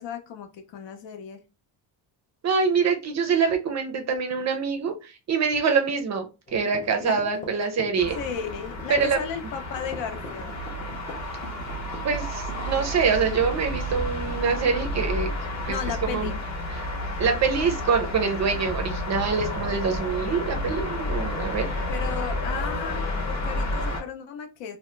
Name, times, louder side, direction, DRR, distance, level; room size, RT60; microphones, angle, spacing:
voice 1, 0.0-1.4 7.0-7.1 8.2-10.5 15.7-16.4 21.9-24.8, left 7 dB, 70° left, 6 dB, 0.7 m, -35 dB
voice 2, 2.4-8.2 8.9-9.2 12.0-15.3 15.6-15.8 16.0-16.3 16.7-16.9 17.2-21.7, right 5 dB, 40° right, 5 dB, 0.4 m, -25 dB
sound 1, 6.5-9.2 9.8-12.9, left 2 dB, 20° left, 0.4 m, -42 dB
sound 2, 8.0-24.0, left 1 dB, 35° left, 0.8 m, -31 dB
2.8 x 2.1 x 3.1 m, 0.29 s
cardioid pair, 175°, 45 cm